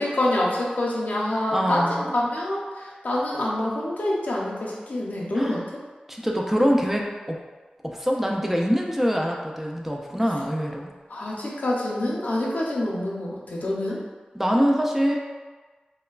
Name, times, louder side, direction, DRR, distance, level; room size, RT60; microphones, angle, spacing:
voice 1, 0.0-5.6 11.1-14.0, left 1 dB, 70° left, -4 dB, 0.5 m, -26 dB
voice 2, 1.5-2.1 5.3-5.6 6.1-7.4 7.8-10.9 14.4-15.2, equal, 10° right, 0 dB, 0.3 m, -24 dB
3.0 x 2.1 x 2.2 m, 1.3 s
wide cardioid pair, 55°, 3 cm